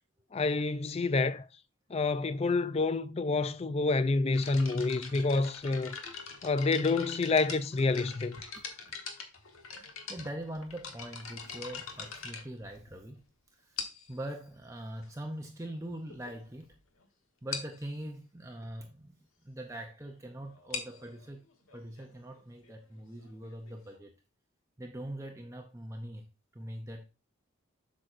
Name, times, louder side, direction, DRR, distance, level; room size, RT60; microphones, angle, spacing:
voice 1, 0.3-1.5 1.9-6.0 6.4-8.4, left 3 dB, 30° left, 0.3 m, -28 dB
sound 1, 4.3-13.2 13.8-14.2 15.0-15.1 15.7-15.8 16.1-16.3 16.6-16.7 17.0-17.1 17.5-17.8 20.5-24.0, left 5 dB, 80° left, 1.4 m, -43 dB
voice 2, 9.8-13.2 13.5-13.8 14.1-16.7 17.4-19.2 19.4-21.4 21.7-24.1 24.8-26.3 26.5-27.0, right 1 dB, 15° right, 0.6 m, -42 dB
8.0 x 6.2 x 2.6 m
head